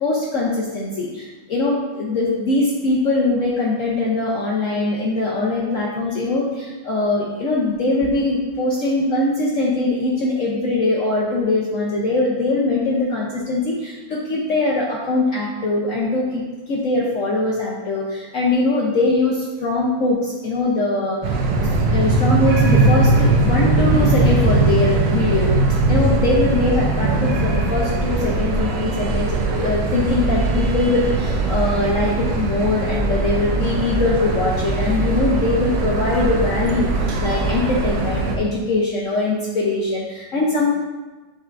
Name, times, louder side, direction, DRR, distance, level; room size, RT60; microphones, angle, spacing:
voice 1, 0.0-21.2 21.6-25.6 25.9-40.8, left 2 dB, 65° left, -4 dB, 0.8 m, -22 dB
sound 1, 21.2-38.4, right 2 dB, 70° right, 1.3 m, -20 dB
8.4 x 4.6 x 2.5 m, 1.2 s
omnidirectional pair, 2.1 m